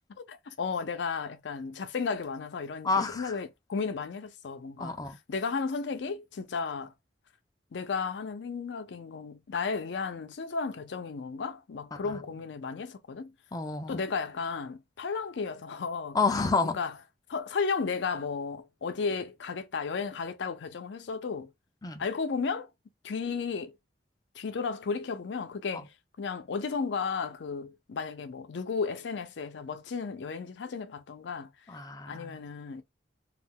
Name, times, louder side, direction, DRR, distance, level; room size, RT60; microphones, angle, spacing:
voice 1, 0.2-5.0 5.3-6.9 7.7-13.3 13.9-16.2 16.6-16.9 17.3-21.5 22.0-22.7 23.0-23.8 24.3-31.5 32.1-32.8, left 5 dB, 80° left, 0.5 m, -34 dB
voice 2, 2.8-3.4 4.8-5.2 11.9-12.1 13.5-14.0 16.1-16.8 21.8-22.0 25.7-25.8 31.7-32.5, left 4 dB, 20° left, 0.4 m, -30 dB
2.3 x 2.2 x 3.6 m
head